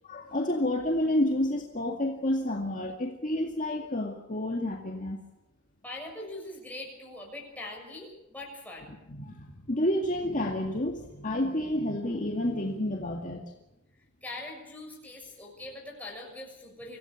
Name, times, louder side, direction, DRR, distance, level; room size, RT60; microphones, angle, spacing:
voice 1, 0.0-5.2 9.1-13.4, left 1 dB, 35° left, 0 dB, 2.2 m, -29 dB
voice 2, 5.8-8.9 14.2-17.0, left 2 dB, 5° left, -1 dB, 6.9 m, -42 dB
26.0 x 16.5 x 7.1 m, 0.95 s
head